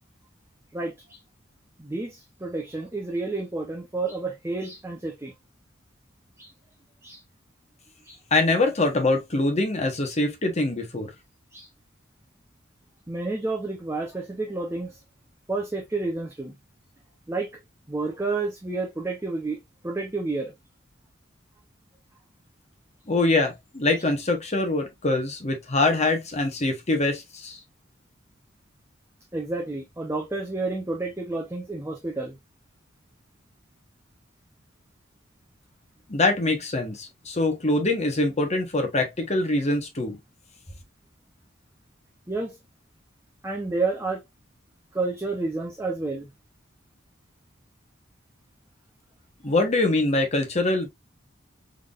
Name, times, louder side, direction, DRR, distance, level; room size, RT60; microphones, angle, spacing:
voice 1, 0.7-1.2 1.8-5.3 6.4-6.5 7.0-7.2 8.0-8.2 11.5-11.7 13.1-15.0 15.5-16.6 17.3-17.5 17.9-19.6 19.8-20.5 29.3-32.4 42.3-42.6 43.4-44.2 44.9-46.3, right 3 dB, 15° right, 0.6 m, -30 dB
voice 2, 8.3-11.1 23.1-27.6 36.1-40.2 49.4-50.9, left 2 dB, 35° left, 1.0 m, -24 dB
3.8 x 3.5 x 2.4 m
head